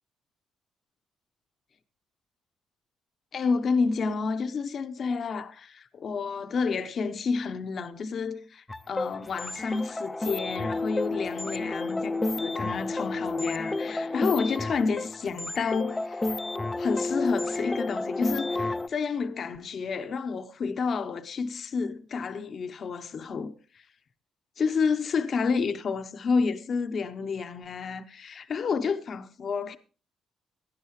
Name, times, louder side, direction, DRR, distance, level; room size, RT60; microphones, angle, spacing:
voice 1, 3.3-16.4 16.8-23.8 24.6-29.8, left 5 dB, 55° left, 0.8 m, -30 dB
sound 1, 8.7-18.9, left 2 dB, 15° left, 0.5 m, -31 dB
18.0 x 10.5 x 3.2 m
cardioid pair, 90°, 0 cm